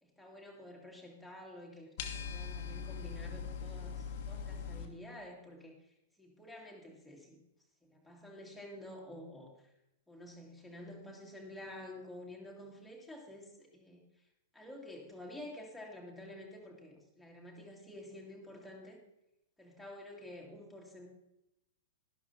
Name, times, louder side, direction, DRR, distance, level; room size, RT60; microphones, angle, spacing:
voice 1, 0.0-5.7 6.2-7.4 7.8-9.5 10.1-14.0 14.5-19.0 19.6-21.1, left 1 dB, ahead, -2 dB, 2.2 m, -50 dB
sound 1, 2.0-4.9, left 6 dB, 45° left, 1.2 m, -41 dB
12.0 x 11.5 x 2.8 m, 0.86 s
figure-of-eight pair, 105°, 0 cm